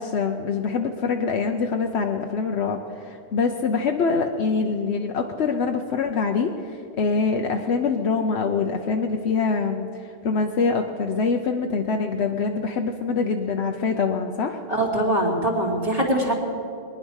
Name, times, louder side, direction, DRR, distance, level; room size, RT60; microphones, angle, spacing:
voice 1, 0.0-14.6, left 5 dB, 85° left, 3 dB, 1.1 m, -24 dB
voice 2, 14.7-16.3, right 1 dB, 35° right, -3 dB, 2.7 m, -22 dB
21.5 x 10.5 x 6.4 m, 2.4 s
omnidirectional pair, 1.1 m